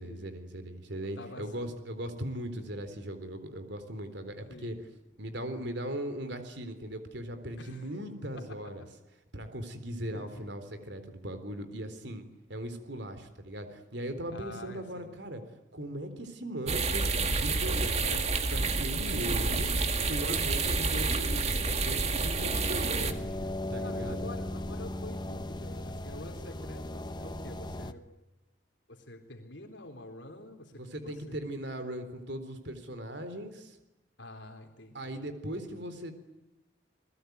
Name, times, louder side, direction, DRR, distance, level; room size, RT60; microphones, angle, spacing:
voice 1, 0.0-4.8 5.2-8.8 9.3-12.2 12.5-15.4 15.7-18.1 18.5-19.7 20.0-23.3 23.7-24.3 30.8-33.8 34.9-36.1, right 1 dB, 60° right, 9 dB, 3.9 m, -39 dB
voice 2, 1.0-1.5 4.5-4.8 7.6-8.6 10.1-10.5 14.3-15.2 17.5-18.5 23.8-28.0 28.9-31.4 34.2-35.2 35.8-35.9, left 2 dB, 70° left, 4 dB, 3.7 m, -47 dB
sound 1, 16.7-23.1, right 3 dB, 35° right, 2.1 m, -29 dB
sound 2, 18.8-27.9, left 1 dB, 20° left, 1.1 m, -38 dB
29.5 x 21.0 x 9.5 m, 0.98 s
head